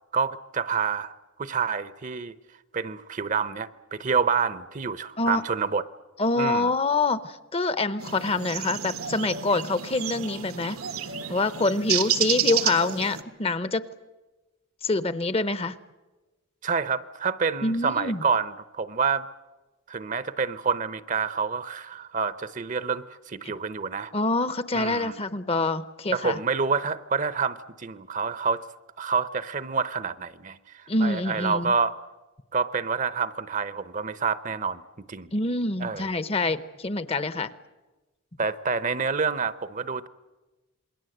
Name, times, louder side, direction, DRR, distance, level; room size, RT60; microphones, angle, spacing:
voice 1, 0.1-1.1 1.4-2.4 2.7-5.8 6.3-6.7 16.6-19.3 19.9-24.1 24.7-25.2 26.1-28.6 29.0-32.0 32.5-34.8 35.1-35.3 35.8-36.1 38.4-40.1, right 5 dB, 35° right, 15 dB, 0.7 m, -28 dB
voice 2, 6.2-10.8 11.3-13.8 14.8-15.7 17.6-18.2 23.4-23.5 24.1-26.4 30.9-31.7 35.3-37.5, left 3 dB, 25° left, 14 dB, 0.7 m, -26 dB
sound 1, 8.0-13.2, right 9 dB, 85° right, 1.5 m, -30 dB
27.5 x 21.5 x 7.9 m, 1.2 s
head